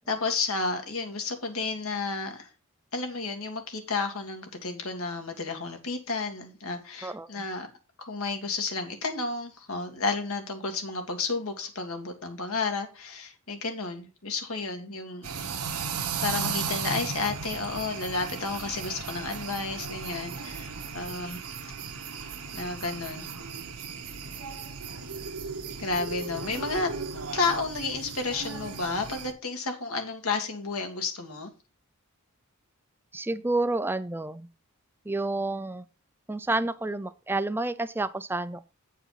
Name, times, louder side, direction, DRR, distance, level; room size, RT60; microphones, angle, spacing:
voice 1, 0.1-2.5 2.9-7.7 8.0-15.3 15.7-15.9 16.2-21.5 22.5-23.3 25.8-26.9 27.3-31.5, left 4 dB, 70° left, 1.9 m, -32 dB
voice 2, 7.0-7.4 33.1-34.5 35.1-35.9 36.3-38.7, right 2 dB, 10° right, 0.4 m, -30 dB
sound 1, 15.2-29.3, right 5 dB, 85° right, 1.2 m, -36 dB
9.0 x 4.7 x 5.6 m
head